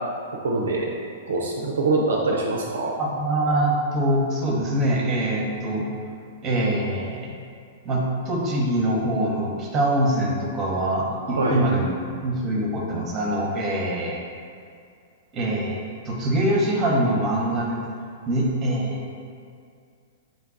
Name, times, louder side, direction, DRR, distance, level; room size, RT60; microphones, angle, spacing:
voice 1, 0.4-0.9 1.3-2.9 11.3-11.6, right 3 dB, 75° right, -1 dB, 0.4 m, -24 dB
voice 2, 3.0-5.9 6.4-7.4 7.8-11.9 12.2-14.2 15.3-17.8 18.3-19.2, right 1 dB, 30° right, -2 dB, 0.8 m, -24 dB
4.0 x 2.2 x 3.7 m, 2.3 s
figure-of-eight pair, 105°, 0 cm